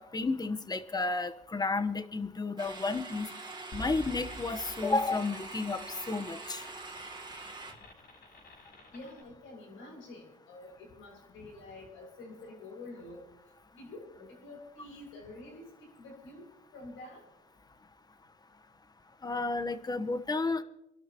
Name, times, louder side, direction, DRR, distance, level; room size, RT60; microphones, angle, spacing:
voice 1, 0.0-3.3 3.7-5.8 6.1-6.6 19.2-20.6, left 3 dB, 20° left, 10 dB, 1.1 m, -32 dB
sound 1, 2.6-7.7, right 3 dB, 20° right, 2.4 m, -44 dB
sound 2, 3.7-9.2, left 1 dB, 55° left, 6.6 m, -49 dB
voice 2, 8.9-13.2 13.7-15.6 16.0-16.5 16.7-17.2, left 2 dB, 90° left, 0 dB, 6.4 m, -48 dB
28.0 x 12.0 x 3.0 m, 0.88 s
cardioid pair, 90°, 20 cm